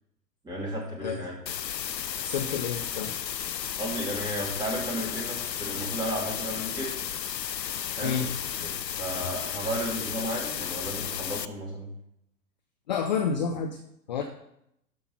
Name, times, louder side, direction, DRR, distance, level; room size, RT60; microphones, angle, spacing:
voice 1, 0.4-1.3 3.8-7.1 8.0-8.1 8.6-11.9, right 1 dB, 10° right, -4 dB, 3.0 m, -33 dB
sound 1, 1.5-11.5, left 9 dB, 80° left, 0.6 m, -33 dB
voice 2, 2.2-3.1 8.0-8.7 12.9-13.8 14.1-14.2, left 6 dB, 30° left, 6 dB, 0.6 m, -30 dB
12.5 x 5.6 x 5.8 m, 0.77 s
figure-of-eight pair, 115°, 50 cm